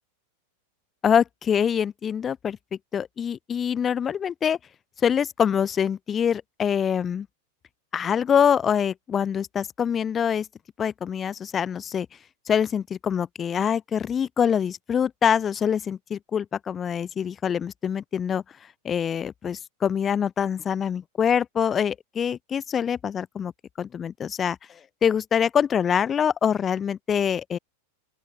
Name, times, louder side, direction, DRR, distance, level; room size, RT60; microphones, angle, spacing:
voice 1, 1.0-2.6 2.9-4.6 5.0-7.3 7.9-10.5 10.8-12.1 12.5-18.4 18.8-23.5 23.8-27.6, left 8 dB, 25° left, 0.5 m, -25 dB
open air
figure-of-eight pair, 90°, 0 cm